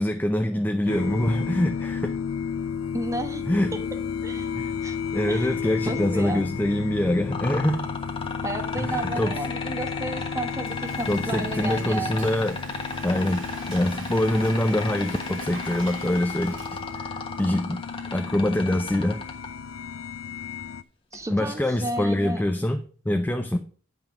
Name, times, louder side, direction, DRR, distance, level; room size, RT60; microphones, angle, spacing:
voice 1, 0.0-2.1 3.5-3.7 4.5-4.7 5.1-7.8 8.8-9.3 11.1-12.6 13.0-16.6 16.9-17.8 18.1-19.2 21.3-23.6, left 1 dB, 10° left, 0.5 m, -25 dB
sound 1, 0.9-20.8, left 6 dB, 85° left, 0.5 m, -33 dB
voice 2, 2.9-3.4 3.7-3.8 4.2-4.5 4.8-5.0 5.3-5.6 5.8-6.5 8.4-12.3 21.1-22.4, right 1 dB, 15° right, 1.1 m, -32 dB
sound 2, 7.3-19.5 21.1-21.2, left 3 dB, 25° left, 1.4 m, -33 dB
Frying (food), 10.2-17.2, right 4 dB, 65° right, 2.3 m, -45 dB
9.3 x 5.9 x 4.9 m
head